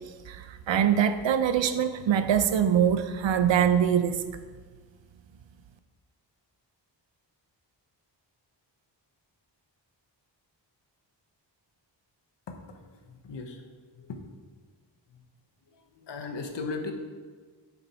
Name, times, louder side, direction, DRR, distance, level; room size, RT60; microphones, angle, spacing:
voice 1, 0.3-4.2, right 8 dB, 80° right, 10 dB, 0.8 m, -23 dB
voice 2, 12.5-13.7 13.9-14.4 15.1-15.3 15.7-16.9, left 4 dB, 70° left, 4 dB, 1.3 m, -38 dB
10.0 x 6.7 x 4.4 m, 1.5 s
wide cardioid pair, 145°, 44 cm